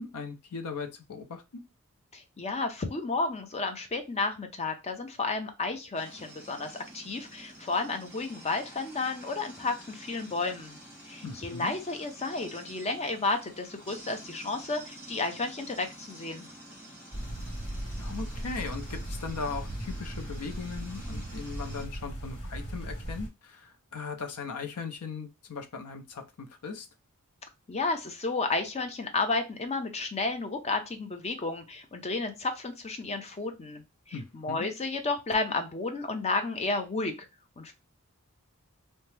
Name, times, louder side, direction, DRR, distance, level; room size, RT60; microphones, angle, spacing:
voice 1, 0.0-1.4 11.2-11.7 18.0-26.9 34.1-34.7, left 4 dB, 90° left, 6 dB, 0.5 m, -38 dB
voice 2, 2.1-10.8 11.1-16.5 27.7-33.8 34.1-37.1 37.6-37.7, left 3 dB, 30° left, 6 dB, 0.5 m, -32 dB
sound 1, 5.9-21.9, right 1 dB, 10° right, 1.1 m, -49 dB
sound 2, 17.1-23.3, right 1 dB, 60° left, 1.2 m, -37 dB
2.8 x 2.2 x 3.2 m, 0.25 s
head